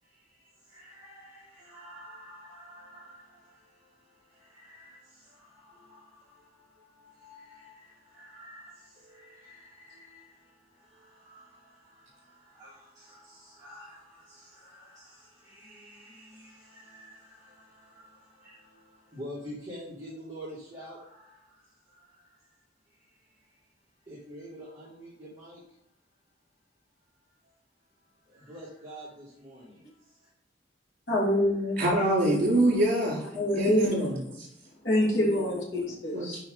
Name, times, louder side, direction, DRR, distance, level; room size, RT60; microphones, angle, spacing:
voice 1, 0.0-22.5 22.9-23.7 24.1-25.8 28.2-30.3, equal, 20° right, -8 dB, 2.5 m, -49 dB
voice 2, 31.1-31.8 32.2-32.6 33.3-34.1 34.8-36.4, left 1 dB, 85° left, -5 dB, 2.8 m, -26 dB
voice 3, 31.8-33.2 33.5-34.2 36.1-36.4, right 1 dB, 50° right, -2 dB, 3.2 m, -25 dB
9.0 x 5.4 x 3.9 m, 0.78 s
head